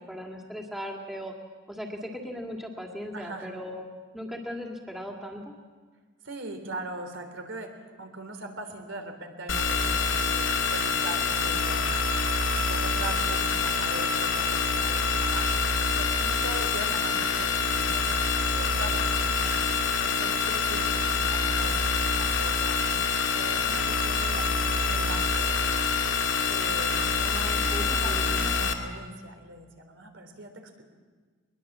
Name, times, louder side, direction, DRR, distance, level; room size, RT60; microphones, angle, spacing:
voice 1, 0.1-1.3 1.7-3.9 4.1-5.5 27.2-28.7, equal, ahead, 0 dB, 2.1 m, -38 dB
voice 2, 3.1-3.5 6.2-7.7 8.0-10.5 10.7-11.9 12.7-19.6 20.0-22.9 23.3-25.5 26.5-30.8, right 2 dB, 80° right, 5 dB, 3.4 m, -40 dB
sound 1, 9.5-28.7, left 4 dB, 75° left, 2.4 m, -26 dB
22.0 x 21.5 x 7.4 m, 1.4 s
head